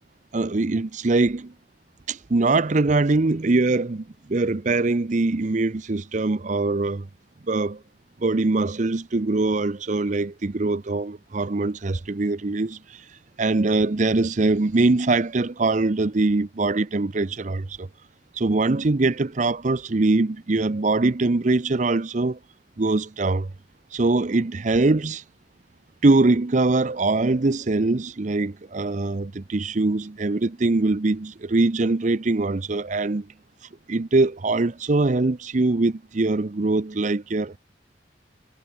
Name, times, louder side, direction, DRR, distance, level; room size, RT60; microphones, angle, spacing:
voice 1, 0.3-1.5 2.1-7.1 7.5-7.8 8.2-12.8 13.4-17.9 18.4-22.4 22.8-23.5 23.9-25.2 26.0-33.3 33.9-37.6, right 2 dB, 40° right, 0.6 m, -22 dB
head